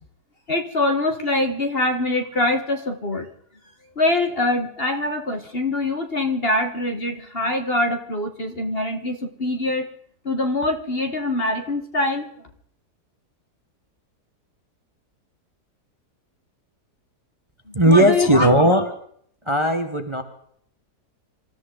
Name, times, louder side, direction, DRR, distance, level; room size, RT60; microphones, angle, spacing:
voice 1, 0.5-3.3 3.9-9.9 10.2-12.3 17.7-18.5, left 2 dB, 40° left, 6 dB, 1.5 m, -24 dB
voice 2, 17.7-18.9 19.5-20.2, right 1 dB, 20° right, 6 dB, 1.2 m, -17 dB
27.0 x 14.0 x 3.9 m, 0.66 s
omnidirectional pair, 1.7 m